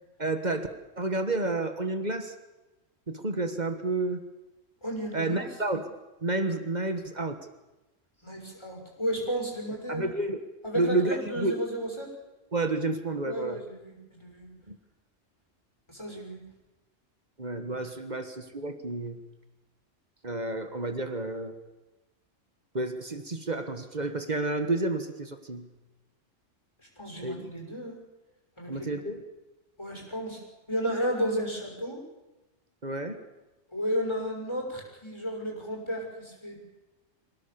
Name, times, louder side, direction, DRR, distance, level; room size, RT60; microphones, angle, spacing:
voice 1, 0.2-0.7 1.0-2.3 3.1-4.2 5.1-5.9 6.2-7.4 9.9-10.4 10.7-11.6 12.5-13.6 14.7-14.8 17.4-19.2 20.2-21.5 22.7-25.7 27.2-27.5 28.7-29.2 32.8-33.2, right 2 dB, 35° right, 8 dB, 1.7 m, -30 dB
voice 2, 4.8-5.5 8.2-10.0 10.6-12.1 13.2-14.5 15.9-16.4 26.8-28.0 28.6-29.0 29.8-30.4 30.7-32.0 33.7-36.6, equal, 20° left, 0 dB, 6.5 m, -33 dB
26.0 x 18.0 x 7.0 m, 1.1 s
omnidirectional pair, 1.3 m